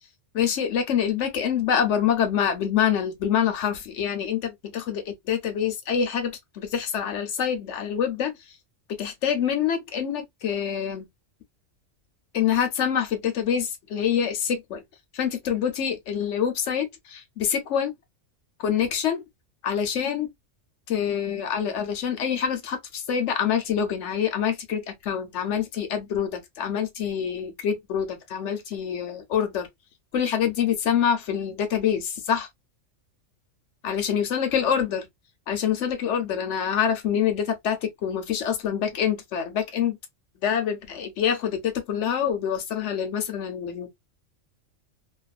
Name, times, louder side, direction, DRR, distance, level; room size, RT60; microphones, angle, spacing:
voice 1, 0.3-8.3 9.0-11.1 12.3-14.8 15.1-17.9 18.6-19.2 19.6-20.3 20.9-29.7 30.1-32.5 33.8-35.1 35.5-40.0 40.4-43.9, left 8 dB, 70° left, 1.0 m, -26 dB
2.6 x 2.4 x 2.3 m
omnidirectional pair, 1.3 m